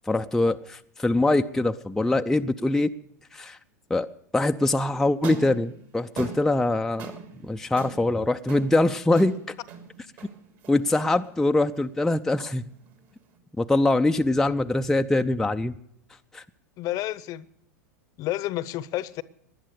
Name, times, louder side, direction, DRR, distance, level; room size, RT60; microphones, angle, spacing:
voice 1, 0.1-2.9 3.3-3.6 3.9-7.1 7.4-9.4 10.7-12.6 13.6-15.7 16.3-16.4, left 2 dB, 5° left, 0.5 m, -23 dB
sound 1, 5.1-13.4, right 6 dB, 50° right, 2.9 m, -43 dB
voice 2, 16.8-17.5 18.2-19.2, left 15 dB, 40° left, 0.8 m, -30 dB
19.0 x 11.0 x 6.7 m
hypercardioid pair, 90°, 9 cm